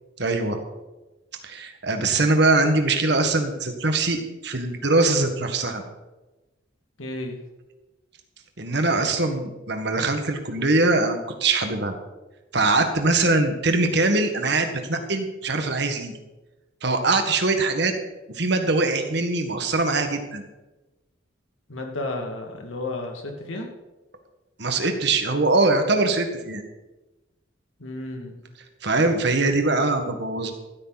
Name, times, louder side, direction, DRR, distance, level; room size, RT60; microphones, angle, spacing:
voice 1, 0.2-0.6 1.4-5.8 8.6-12.0 12.5-16.1 16.8-17.9 18.3-20.4 24.6-26.6 28.8-30.5, right 3 dB, 60° right, 6 dB, 1.7 m, -22 dB
voice 2, 7.0-7.4 21.7-23.7 27.8-28.4, left 2 dB, 90° left, 2 dB, 2.3 m, -32 dB
14.5 x 13.0 x 4.1 m, 1.1 s
head